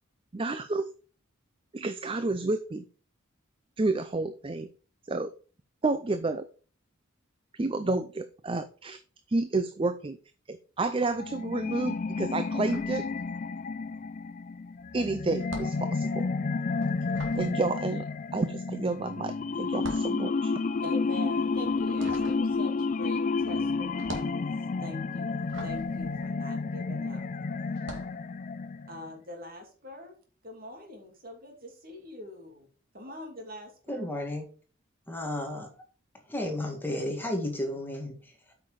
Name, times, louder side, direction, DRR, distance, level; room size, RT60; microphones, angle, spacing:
voice 1, 0.3-0.9 1.7-2.8 3.8-4.7 5.1-5.3 5.8-6.5 7.5-9.0 9.3-10.2 10.5-13.1 14.9-16.3 17.4-18.0 18.3-20.6, right 3 dB, 25° right, 0.5 m, -30 dB
sound 1, 11.1-29.1, left 4 dB, 40° left, 0.4 m, -31 dB
sound 2, 12.5-13.7 14.0-27.1 27.7-28.2, right 1 dB, 65° right, 2.2 m, -45 dB
voice 2, 20.8-24.5 24.8-27.2 28.9-30.1 30.4-32.7 32.9-34.1, left 1 dB, 45° right, 2.7 m, -44 dB
voice 3, 33.9-34.5 35.1-35.8 36.3-38.5, left 1 dB, 10° left, 1.9 m, -33 dB
8.6 x 5.9 x 4.9 m
head